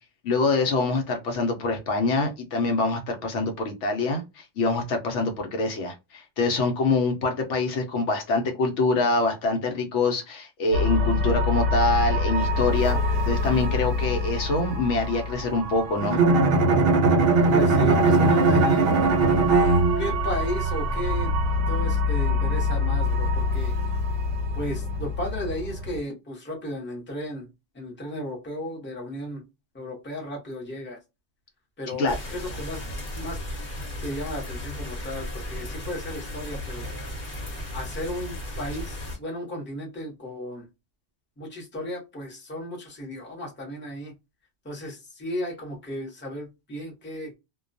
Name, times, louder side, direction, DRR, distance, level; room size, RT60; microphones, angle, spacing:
voice 1, 0.2-13.0 13.3-16.2 32.0-32.2, left 3 dB, 75° left, 4 dB, 0.9 m, -25 dB
sound 1, 10.7-26.0, left 2 dB, 85° right, 0.9 m, -27 dB
Bowed string instrument, 16.0-20.3, right 3 dB, 60° right, 0.7 m, -19 dB
voice 2, 17.5-19.0 20.0-21.4 21.7-23.7 24.5-27.5 27.7-29.4 29.7-31.0 31.8-32.8 33.1-33.4 34.0-36.9 37.7-40.7 41.4-44.1 44.6-47.4, left 1 dB, 10° left, -1 dB, 0.7 m, -34 dB
sound 2, 32.1-39.2, left 1 dB, 45° left, 0.9 m, -35 dB
2.2 x 2.2 x 2.5 m, 0.24 s
omnidirectional pair, 1.3 m